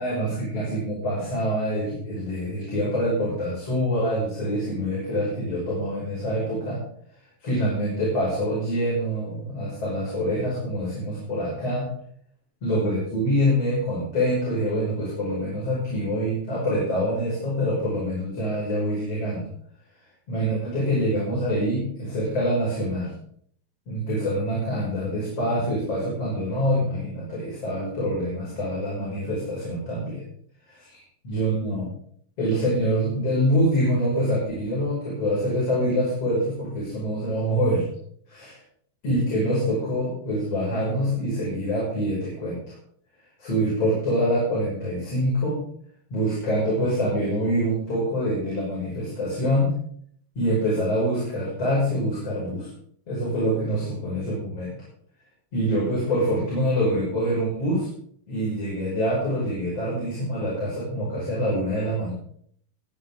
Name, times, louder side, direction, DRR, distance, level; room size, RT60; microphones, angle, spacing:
voice 1, 0.0-6.8 7.4-11.9 12.6-19.5 20.3-23.1 23.9-30.2 30.7-31.9 32.4-37.8 38.3-38.6 39.0-42.7 43.4-45.6 46.1-49.7 50.4-52.7 53.1-54.7 55.5-57.9 58.3-62.1, equal, 35° left, -7 dB, 7.2 m, -25 dB
21.5 x 11.0 x 3.8 m, 0.64 s
omnidirectional pair, 4.6 m